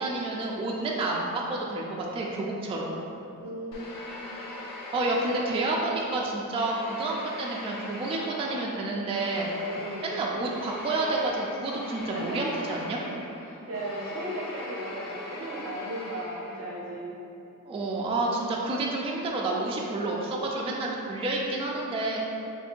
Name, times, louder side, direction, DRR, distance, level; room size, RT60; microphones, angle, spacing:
voice 1, 0.0-3.0 4.9-9.5 10.0-13.0 17.7-22.2, right 2 dB, 20° right, -3 dB, 0.3 m, -29 dB
voice 2, 3.4-4.3 9.6-10.1 12.1-12.4 13.1-17.1, right 1 dB, 45° right, -5 dB, 0.7 m, -36 dB
sound 1, 3.7-6.1 6.5-16.9, left 2 dB, 85° left, 0.6 m, -41 dB
3.2 x 2.6 x 4.3 m, 2.9 s
wide cardioid pair, 155°, 32 cm